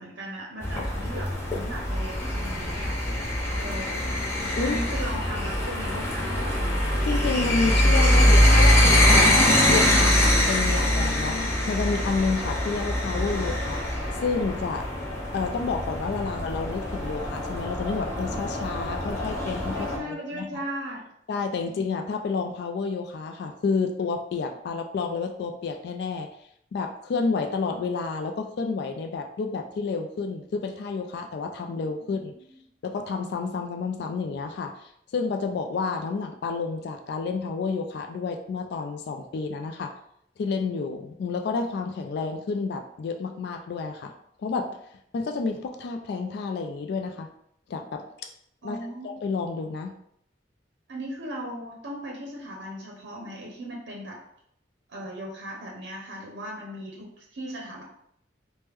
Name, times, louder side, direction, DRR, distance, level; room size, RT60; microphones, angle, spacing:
voice 1, 0.0-3.0 3.2-4.2 4.6-6.3 19.7-21.0 21.6-21.7 32.0-32.5 48.6-49.1 50.9-54.2 54.9-57.8, equal, 70° right, -2 dB, 0.6 m, -37 dB
sound 1, 0.6-20.0, left 1 dB, 15° left, 0.6 m, -23 dB
voice 2, 7.0-9.3 9.6-13.8 14.2-14.9 15.3-20.6 21.3-26.3 26.7-32.3 32.8-39.9 40.4-44.1 44.4-44.7 45.1-47.3 47.7-48.0 48.6-48.8 49.0-49.9, left 4 dB, 65° left, 5 dB, 0.3 m, -30 dB
3.1 x 2.1 x 3.4 m, 0.71 s
head